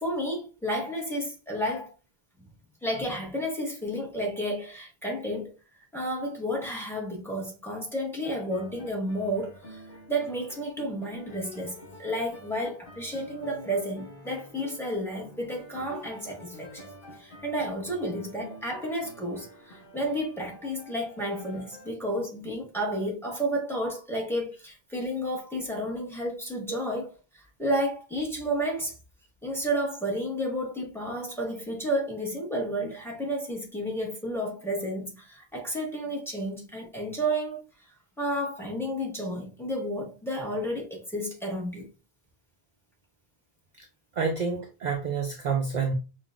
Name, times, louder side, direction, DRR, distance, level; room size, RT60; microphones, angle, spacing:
voice 1, 0.0-1.9 2.8-5.5 5.9-9.8 10.1-16.9 17.1-27.1 27.3-28.9 29.4-37.6 38.2-41.9, equal, ahead, 1.2 m, -31 dB
sound 1, 8.2-21.9, left 1 dB, 55° left, 1.0 m, -48 dB
voice 2, 44.1-45.9, right 5 dB, 55° right, 0.6 m, -28 dB
5.6 x 2.5 x 2.3 m
omnidirectional pair, 1.0 m